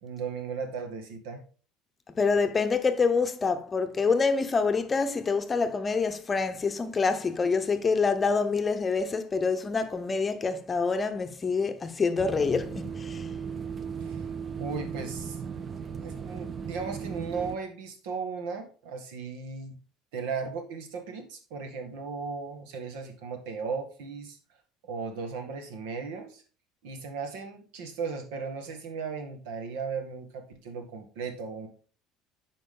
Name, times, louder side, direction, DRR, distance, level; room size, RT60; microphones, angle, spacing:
voice 1, 0.0-1.4 14.0-14.2 14.6-15.4 16.0-19.8 20.1-24.4 24.9-26.4 26.8-31.7, right 5 dB, 90° right, 1.8 m, -36 dB
voice 2, 2.2-13.3, left 4 dB, 20° left, 0.7 m, -26 dB
sound 1, 12.2-17.6, right 6 dB, 25° right, 0.6 m, -37 dB
9.2 x 5.0 x 3.8 m
cardioid pair, 140°, 0 cm